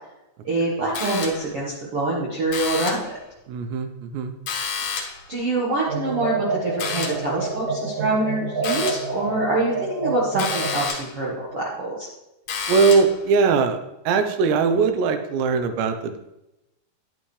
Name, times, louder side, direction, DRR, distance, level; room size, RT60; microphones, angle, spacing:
voice 1, 0.4-3.2 4.8-4.9 5.3-12.1, right 2 dB, 65° right, -5 dB, 1.4 m, -25 dB
sound 1, 0.9-1.6 2.5-3.2 4.5-5.3 6.8-7.3 8.6-9.2 10.4-11.2 12.5-13.2, left 5 dB, 75° left, 1.7 m, -30 dB
voice 2, 3.5-4.3 12.7-13.8 14.1-16.2, right 5 dB, 90° right, 7 dB, 3.0 m, -20 dB
sound 2, 5.9-10.9, right 4 dB, 30° right, 1.1 m, -28 dB
10.5 x 8.9 x 3.2 m, 0.93 s
omnidirectional pair, 4.8 m